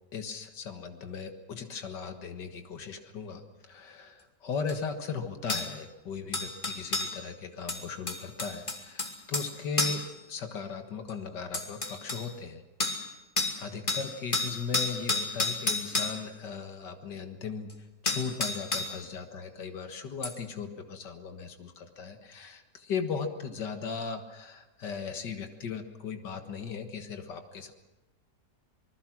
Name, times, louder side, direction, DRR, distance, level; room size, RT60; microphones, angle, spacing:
voice 1, 0.1-12.6 13.6-17.7 18.0-27.7, left 5 dB, 85° left, 7 dB, 2.3 m, -37 dB
sound 1, 4.7-4.8 5.5-5.7 6.3-7.1 7.7-9.5 9.8-10.1 11.1-11.2 11.5-12.2 12.8-13.1 13.4-13.6 13.9-16.2 17.7-17.8 18.1-19.0 20.2-20.3, left 2 dB, 30° left, 2.8 m, -30 dB
27.0 x 20.0 x 6.2 m, 1.1 s
omnidirectional pair, 1.8 m